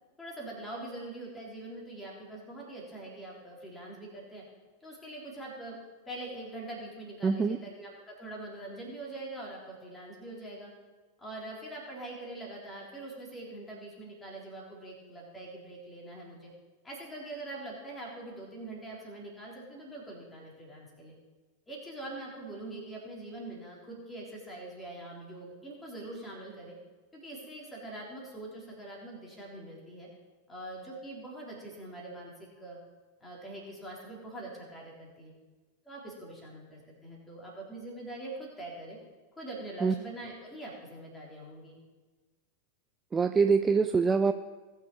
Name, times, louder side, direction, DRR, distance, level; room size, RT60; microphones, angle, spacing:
voice 1, 0.2-4.4 4.8-5.8 6.1-10.7 11.2-16.5 16.8-21.2 21.7-26.8 27.1-30.1 30.5-32.8 33.2-35.3 35.9-39.0 39.4-41.8, right 2 dB, 10° left, -3 dB, 3.7 m, -43 dB
voice 2, 7.2-7.6 39.8-39.9 43.1-44.3, right 5 dB, 15° right, 9 dB, 0.4 m, -24 dB
19.5 x 6.5 x 4.6 m, 1.3 s
figure-of-eight pair, 90°, 0 cm